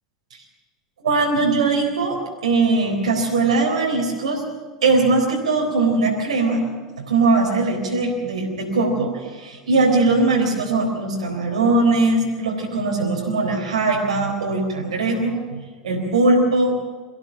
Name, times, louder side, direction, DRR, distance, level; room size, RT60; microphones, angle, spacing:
voice 1, 1.0-4.4 4.8-6.6 7.0-16.7, right 3 dB, 80° right, 0 dB, 4.0 m, -20 dB
23.5 x 15.5 x 7.4 m, 1.5 s
hypercardioid pair, 85°, 3 cm